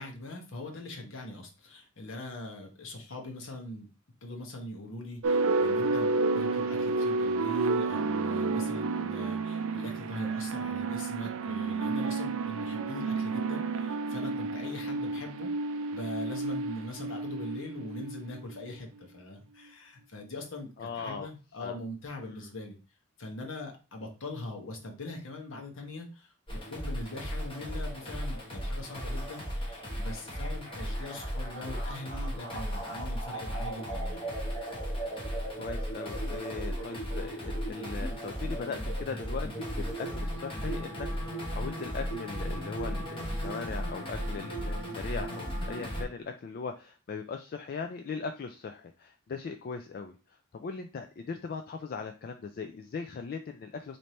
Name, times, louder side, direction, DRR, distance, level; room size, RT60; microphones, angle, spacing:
voice 1, 0.0-3.9 4.2-15.5 15.9-22.8 23.2-34.3, left 1 dB, 60° left, 2 dB, 1.0 m, -42 dB
sound 1, 5.2-18.6, right 3 dB, 65° right, 0.4 m, -30 dB
voice 2, 20.8-21.3 21.6-21.8 22.2-22.5 35.6-54.0, left 5 dB, 45° left, 6 dB, 0.3 m, -39 dB
sound 2, 26.5-46.0, equal, 25° left, 1.0 m, -35 dB
3.3 x 2.6 x 4.2 m, 0.33 s
head